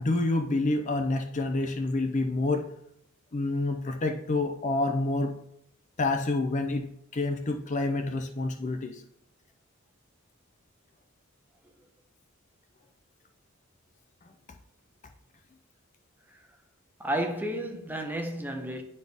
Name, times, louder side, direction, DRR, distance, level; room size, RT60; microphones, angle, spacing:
voice 1, 0.0-2.7 3.3-5.4 6.0-9.0, left 2 dB, 35° left, 0.5 m, -28 dB
voice 2, 17.0-18.8, right 1 dB, 10° right, 0.8 m, -31 dB
10.0 x 4.2 x 3.5 m
head